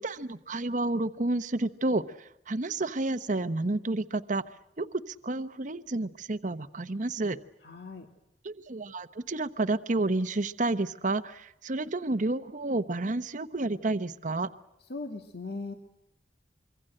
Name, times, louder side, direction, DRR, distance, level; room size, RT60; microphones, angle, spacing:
voice 1, 0.0-4.4 4.8-7.4 8.4-14.5, right 2 dB, 45° right, 11 dB, 1.0 m, -30 dB
voice 2, 7.6-8.1 14.9-15.7, left 3 dB, 65° left, 5 dB, 1.9 m, -38 dB
26.0 x 24.0 x 7.7 m, 0.83 s
head